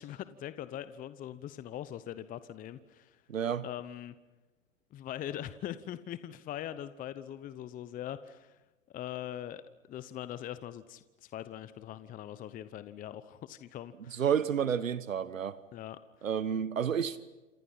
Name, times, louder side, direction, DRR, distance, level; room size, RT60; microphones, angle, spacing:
voice 1, 0.0-3.2 3.6-4.2 4.9-8.6 8.9-14.2 15.7-16.3, left 11 dB, 20° left, 14 dB, 0.9 m, -42 dB
voice 2, 3.3-3.6 14.1-15.6 16.2-17.2, right 8 dB, 90° right, 15 dB, 1.2 m, -30 dB
28.0 x 27.5 x 5.7 m, 1.2 s
hypercardioid pair, 115°, 38 cm